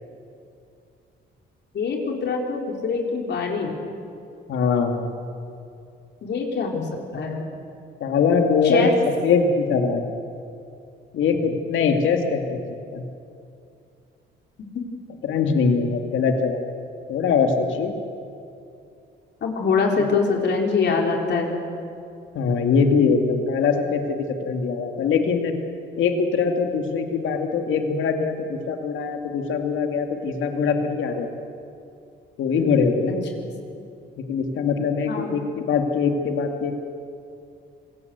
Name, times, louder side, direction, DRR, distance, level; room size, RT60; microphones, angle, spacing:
voice 1, 1.7-3.8 6.2-6.9 7.1-7.5 8.6-8.9 19.4-21.5 33.4-33.5 35.1-35.4, left 5 dB, 60° left, 1 dB, 4.3 m, -24 dB
voice 2, 4.5-5.1 8.0-9.0 9.2-10.1 11.1-12.6 12.9-13.1 15.2-16.7 17.1-17.9 22.3-25.5 26.0-31.3 32.4-33.2 34.3-36.8, left 5 dB, 75° left, 4 dB, 2.4 m, -22 dB
26.0 x 17.5 x 8.1 m, 2.6 s
cardioid pair, 90°, 20 cm